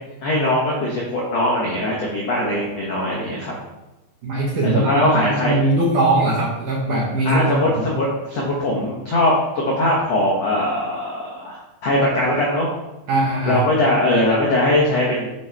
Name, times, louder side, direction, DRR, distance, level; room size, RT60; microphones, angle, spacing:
voice 1, 0.2-3.5 4.6-5.6 7.2-9.3 9.6-12.7 13.4-15.3, left 1 dB, 80° left, -4 dB, 1.4 m, -20 dB
voice 2, 4.2-7.9 13.1-13.6, right 2 dB, 65° right, -4 dB, 2.1 m, -20 dB
8.3 x 4.7 x 4.6 m, 0.98 s
omnidirectional pair, 5.1 m